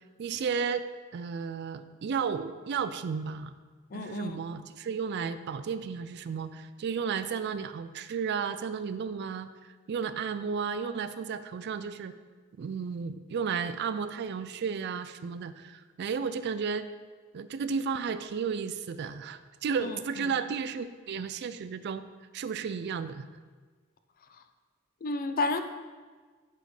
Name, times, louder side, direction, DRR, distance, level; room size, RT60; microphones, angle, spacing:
voice 1, 0.2-0.9 1.1-3.5 3.9-12.1 12.6-16.9 17.3-22.0 22.3-23.3, right 6 dB, 55° right, 12 dB, 0.3 m, -33 dB
voice 2, 3.9-4.4 19.8-20.0 25.0-25.6, left 3 dB, 45° left, 9 dB, 0.5 m, -31 dB
7.9 x 4.1 x 4.9 m, 1.4 s
head